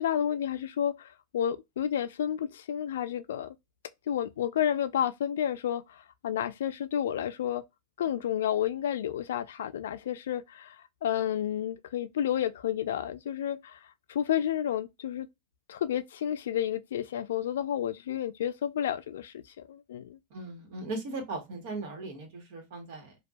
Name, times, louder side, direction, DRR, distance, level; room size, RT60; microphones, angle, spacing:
voice 1, 0.0-3.5 4.1-7.6 8.0-13.8 14.1-15.3 15.7-20.2, left 10 dB, 85° left, 0.3 m, -31 dB
voice 2, 20.3-23.2, right 2 dB, 60° right, 1.2 m, -38 dB
2.5 x 2.2 x 2.2 m
supercardioid pair, 135°, 0 cm